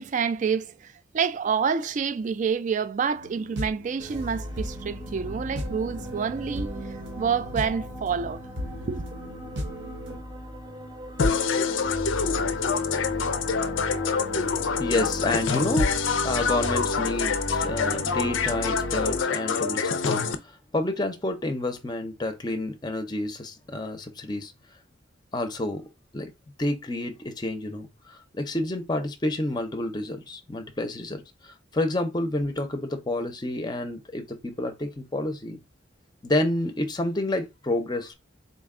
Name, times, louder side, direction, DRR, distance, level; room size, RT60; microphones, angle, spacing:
voice 1, 0.0-6.7 7.2-8.4 8.9-9.0, right 6 dB, 40° right, 0.3 m, -28 dB
sound 1, 3.2-10.2, equal, 65° right, 0.8 m, -37 dB
sound 2, 4.0-19.2, equal, 20° right, 0.7 m, -37 dB
sound 3, 11.2-20.3, left 5 dB, 90° left, 0.5 m, -26 dB
voice 2, 14.8-15.9 16.2-24.5 25.3-25.8 26.1-26.3 26.6-35.6 36.2-38.2, left 1 dB, 20° left, 0.6 m, -29 dB
4.0 x 2.2 x 3.6 m
head